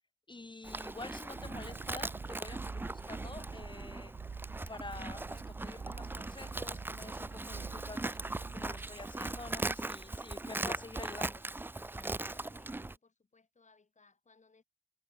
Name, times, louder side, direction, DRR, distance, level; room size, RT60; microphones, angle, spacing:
voice 1, 0.3-4.1 4.7-8.2 8.5-11.4, left 2 dB, 35° left, 2.4 m, -48 dB
Livestock farm animals working animals, 0.6-13.0, right 2 dB, 15° right, 0.3 m, -40 dB
sound 1, 1.3-9.8, right 5 dB, 85° right, 1.6 m, -47 dB
voice 2, 12.1-14.6, left 4 dB, 60° left, 2.3 m, -66 dB
wide cardioid pair, 90°, 14 cm